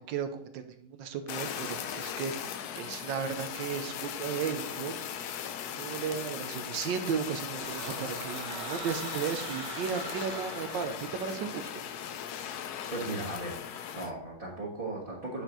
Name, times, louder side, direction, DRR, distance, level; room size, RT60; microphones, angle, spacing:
voice 1, 0.1-5.4 5.8-11.9, right 7 dB, 80° right, 9 dB, 1.4 m, -35 dB
Fire, 1.3-14.1, left 9 dB, 70° left, 1.0 m, -38 dB
sound 1, 7.6-11.6, right 4 dB, 55° right, 1.7 m, -42 dB
voice 2, 12.9-15.4, right 2 dB, 30° right, -6 dB, 1.4 m, -37 dB
9.0 x 4.4 x 3.9 m, 0.69 s
omnidirectional pair, 2.0 m